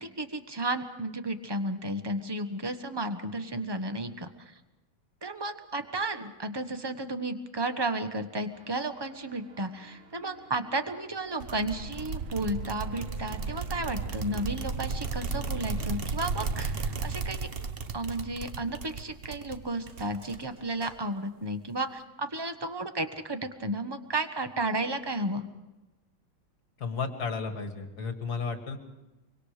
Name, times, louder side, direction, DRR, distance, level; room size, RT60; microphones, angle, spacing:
voice 1, 0.0-4.5 5.2-17.5 17.9-25.4, right 2 dB, 15° right, 8 dB, 0.8 m, -33 dB
sound 1, 8.5-14.5, right 5 dB, 85° right, 2.3 m, -55 dB
sound 2, 11.4-20.6, right 4 dB, 50° right, 0.7 m, -34 dB
Sink (filling or washing), 12.8-12.9 13.2-13.7 14.7-15.1 15.3-16.7 17.0-17.1 17.6-17.7 18.1-18.3 19.1-19.3 19.6-21.8, right 2 dB, 30° right, 2.1 m, -56 dB
voice 2, 26.8-28.8, left 5 dB, 50° left, 6 dB, 2.4 m, -33 dB
25.0 x 24.5 x 5.0 m, 1.1 s
omnidirectional pair, 2.2 m